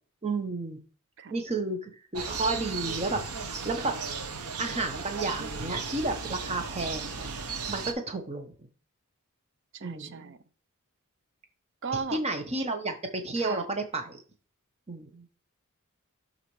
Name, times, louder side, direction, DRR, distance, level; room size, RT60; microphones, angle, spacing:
voice 1, 0.2-0.8 1.3-3.9 4.6-7.3 7.7-8.5 9.8-10.3 12.1-14.2 14.9-15.3, right 2 dB, 30° right, 1.0 m, -32 dB
sound 1, 2.1-7.9, right 5 dB, 80° right, 0.9 m, -35 dB
voice 2, 9.7-10.4 11.8-12.2 13.4-13.7, right 5 dB, 55° right, 0.6 m, -36 dB
11.5 x 4.1 x 3.2 m
head